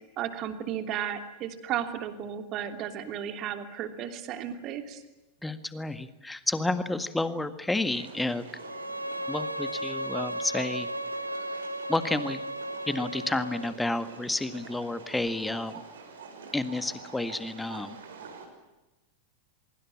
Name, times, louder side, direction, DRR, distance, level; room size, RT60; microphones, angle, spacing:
voice 1, 0.2-5.0, right 9 dB, 35° right, 8 dB, 2.9 m, -34 dB
voice 2, 5.4-8.5 9.3-10.9 11.9-12.4 12.9-15.8 16.5-18.0, left 2 dB, 5° left, 12 dB, 1.8 m, -30 dB
sound 1, 7.7-18.4, right 5 dB, 65° right, 5.7 m, -47 dB
Bowed string instrument, 8.5-13.7, right 1 dB, 85° right, 1.5 m, -35 dB
24.5 x 23.5 x 8.6 m, 1.0 s
figure-of-eight pair, 90°, 0 cm